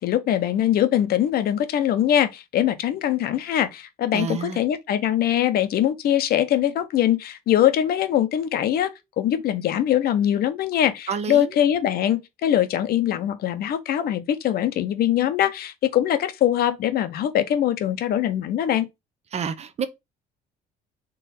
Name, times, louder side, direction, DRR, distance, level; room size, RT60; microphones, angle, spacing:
voice 1, 0.0-18.9, left 11 dB, 65° left, 0.8 m, -22 dB
voice 2, 4.1-4.6 11.1-11.5 19.3-19.9, right 6 dB, 40° right, 0.7 m, -28 dB
3.8 x 3.2 x 4.2 m
cardioid pair, 110°, 17 cm